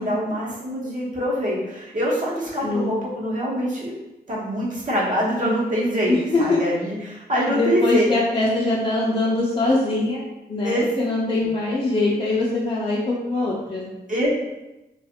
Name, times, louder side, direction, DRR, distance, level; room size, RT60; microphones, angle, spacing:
voice 1, 0.0-4.0 4.3-8.1 10.6-11.0 14.1-14.5, equal, 50° right, -6 dB, 1.0 m, -24 dB
voice 2, 2.6-2.9 6.1-6.6 7.5-13.9, left 2 dB, 35° left, -6 dB, 0.5 m, -23 dB
2.4 x 2.4 x 2.8 m, 1.0 s
cardioid pair, 60°, 17 cm